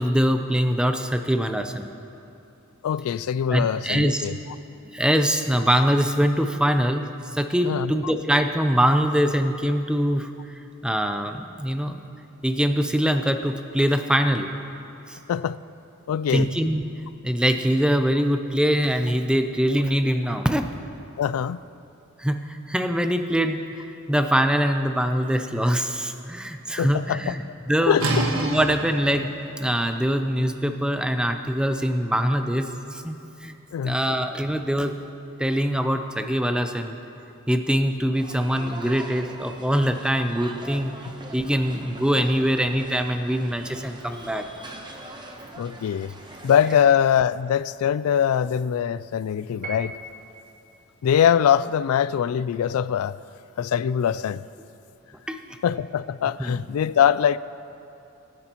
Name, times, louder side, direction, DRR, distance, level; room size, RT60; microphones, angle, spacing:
voice 1, 0.0-1.9 3.5-4.3 4.9-10.3 10.8-12.0 12.4-14.5 15.1-15.2 16.3-16.9 17.2-20.7 22.2-28.0 28.3-29.3 29.6-33.2 33.4-33.5 33.8-34.9 35.4-37.0 37.5-40.9 41.3-44.5 55.3-55.4 56.4-56.5, equal, 5° right, 6 dB, 0.5 m, -23 dB
voice 2, 2.8-4.3 7.6-8.1 15.3-15.6 16.1-16.5 21.2-21.6 26.8-27.4 27.9-28.1 33.7-34.0 41.0-41.1 45.6-46.1 46.4-49.9 51.0-53.2 53.6-54.4 55.6-57.4, left 8 dB, 90° left, 18 dB, 0.3 m, -22 dB
sound 1, 28.0-33.6, right 2 dB, 80° right, 1.3 m, -32 dB
sound 2, 38.1-46.8, right 2 dB, 20° right, 0.9 m, -42 dB
Piano, 49.6-50.5, right 2 dB, 40° right, 1.1 m, -37 dB
24.5 x 9.7 x 3.0 m, 2.7 s
head